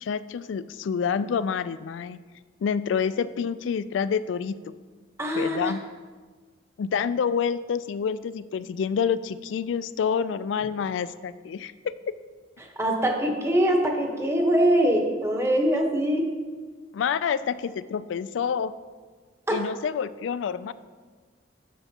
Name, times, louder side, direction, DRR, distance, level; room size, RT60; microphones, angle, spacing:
voice 1, 0.0-2.2 2.6-4.5 5.3-5.8 6.8-11.9 16.9-18.7 19.5-20.7, left 7 dB, 80° left, 15 dB, 0.3 m, -28 dB
voice 2, 5.2-5.7 12.8-16.3 19.5-19.6, right 1 dB, 15° right, 1 dB, 1.0 m, -23 dB
10.5 x 6.9 x 2.8 m, 1.4 s
head